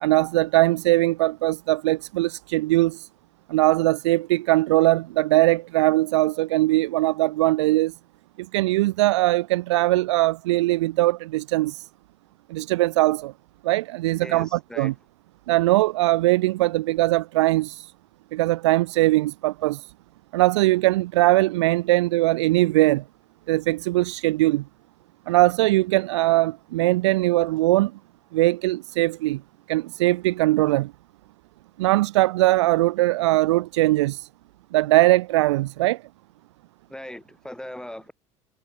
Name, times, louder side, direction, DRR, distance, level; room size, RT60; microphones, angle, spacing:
voice 1, 0.0-3.1 3.5-7.9 8.4-11.9 12.5-13.3 13.6-14.9 15.5-17.9 18.3-19.9 20.3-23.0 23.5-24.6 25.3-27.9 28.3-29.4 29.7-30.9 31.8-34.3 34.7-36.0, right 18 dB, 80° right, 1.4 m, -21 dB
voice 2, 14.2-14.9 36.9-38.1, left 1 dB, 5° left, 7.0 m, -39 dB
hypercardioid pair, 70°, 15 cm